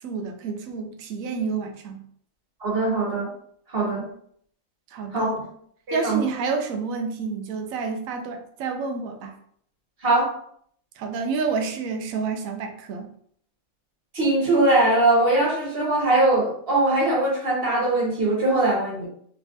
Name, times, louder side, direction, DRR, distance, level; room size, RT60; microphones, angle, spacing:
voice 1, 0.0-2.0 3.8-4.1 4.9-5.4 5.9-9.4 11.0-13.1, right 5 dB, 80° right, 4 dB, 1.0 m, -29 dB
voice 2, 2.6-3.3 3.7-4.1 5.1-5.4 5.9-6.2 10.0-10.3 14.1-19.1, right 2 dB, 45° right, -5 dB, 1.6 m, -21 dB
3.3 x 3.3 x 2.6 m, 0.64 s
omnidirectional pair, 1.4 m